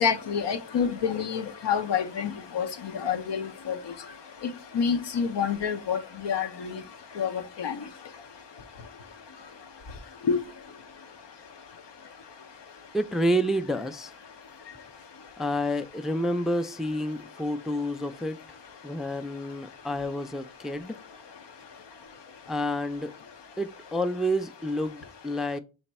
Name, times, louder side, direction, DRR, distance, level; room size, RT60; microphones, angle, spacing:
voice 1, 0.0-2.7 3.0-3.8 4.4-6.8 7.2-7.3 7.6-7.7 10.3-10.4, left 6 dB, 75° left, 0.7 m, -27 dB
voice 2, 12.9-14.1 15.4-18.4 18.8-21.0 22.5-23.1 23.6-25.6, equal, ahead, 0.3 m, -29 dB
5.8 x 2.2 x 4.0 m
cardioid pair, 55°, 43 cm